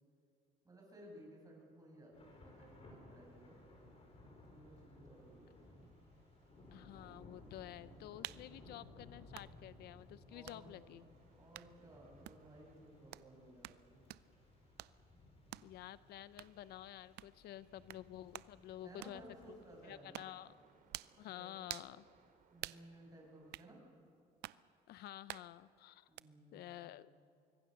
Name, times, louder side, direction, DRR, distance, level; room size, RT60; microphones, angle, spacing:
voice 1, 0.6-3.6 4.5-5.9 10.3-11.1 11.3-14.0 18.8-20.2 21.3-21.7 22.5-23.8 26.1-27.0, right 1 dB, 20° right, 0 dB, 7.5 m, -58 dB
Thunder / Rain, 2.1-19.8, left 2 dB, 35° left, 6.4 m, -60 dB
sound 1, 5.1-23.8, right 5 dB, 55° right, 3.3 m, -74 dB
voice 2, 6.7-11.0 15.6-19.2 19.5-19.6 19.8-20.5 21.2-22.0 24.9-26.1 26.5-27.1, left 13 dB, 75° left, 17 dB, 0.6 m, -51 dB
sound 2, 8.2-8.5 9.3-9.5 10.5-10.6 11.5-11.7 12.3-12.4 13.1-13.3 13.6-13.8 14.1-14.3 14.8-15.0 15.5-15.7 16.4-16.5 17.2-17.3 17.9-18.0 18.3-18.5 19.0-19.2 20.1-20.4 20.9-21.2 21.7-22.0 22.6-22.8 23.5-23.7 24.4-24.6 25.3-25.5 26.2-26.3, right 17 dB, 80° right, 0.5 m, -48 dB
24.5 x 22.5 x 6.7 m, 2.6 s
cardioid pair, 110°, 17 cm